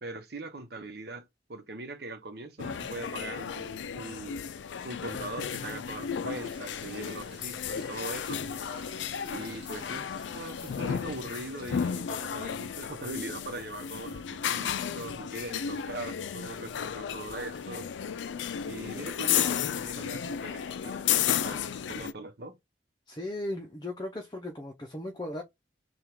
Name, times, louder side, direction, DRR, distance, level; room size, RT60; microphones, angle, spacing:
voice 1, 0.0-4.4 4.8-8.4 9.3-17.9 18.6-22.5, right 2 dB, 60° right, 1.0 m, -41 dB
sound 1, 2.6-22.1, left 8 dB, 80° left, 0.4 m, -33 dB
sound 2, 6.3-11.7, right 4 dB, 30° right, 1.5 m, -56 dB
voice 2, 23.1-25.4, left 1 dB, 25° left, 0.6 m, -37 dB
3.6 x 2.4 x 4.5 m
head